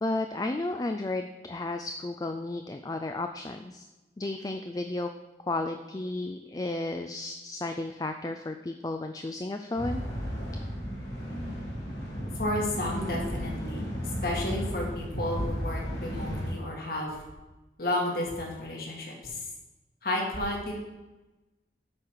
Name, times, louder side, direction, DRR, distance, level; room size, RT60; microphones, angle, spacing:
voice 1, 0.0-3.9 4.2-5.1 5.5-10.0, left 2 dB, 20° left, 6 dB, 0.3 m, -33 dB
sound 1, 9.7-16.5, equal, 80° left, 3.5 m, -35 dB
voice 2, 12.4-13.9 14.2-17.2 17.8-19.4 20.0-20.7, left 1 dB, 55° left, -1 dB, 2.0 m, -31 dB
8.4 x 4.7 x 6.5 m, 1.1 s
head